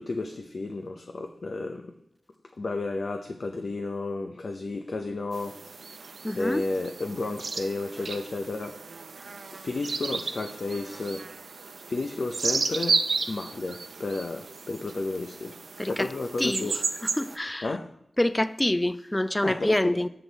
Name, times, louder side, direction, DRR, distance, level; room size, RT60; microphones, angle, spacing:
voice 1, 0.0-1.9 2.6-5.6 6.3-8.8 9.5-11.3 11.8-16.8 17.6-17.9 19.4-20.0, left 3 dB, 65° left, 0.6 m, -32 dB
sound 1, 5.3-17.4, right 4 dB, 80° right, 0.5 m, -33 dB
voice 2, 6.2-6.6 15.8-16.1 16.4-16.7 17.2-17.7 18.2-20.1, left 1 dB, 15° left, 0.4 m, -26 dB
7.9 x 7.8 x 3.9 m
wide cardioid pair, 75°, 0 cm